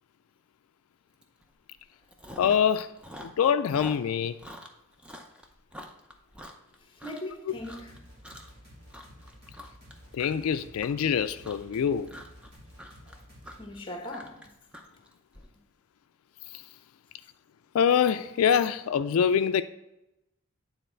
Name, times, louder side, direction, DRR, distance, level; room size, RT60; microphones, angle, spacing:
Chewing mastication, 1.2-1.4 1.7-2.7 3.0-7.3 7.6-8.6 8.9-15.4, equal, 5° right, 0.5 m, -45 dB
voice 1, 2.4-2.9 3.4-4.3 10.1-12.1 17.7-19.6, left 8 dB, 85° left, 0.3 m, -24 dB
voice 2, 6.8-8.0 13.1-13.2 13.6-14.5 15.3-15.5, left 1 dB, 25° left, 0.9 m, -40 dB
sound 1, 7.5-13.7, equal, 45° right, 1.9 m, -52 dB
9.3 x 4.0 x 4.4 m
head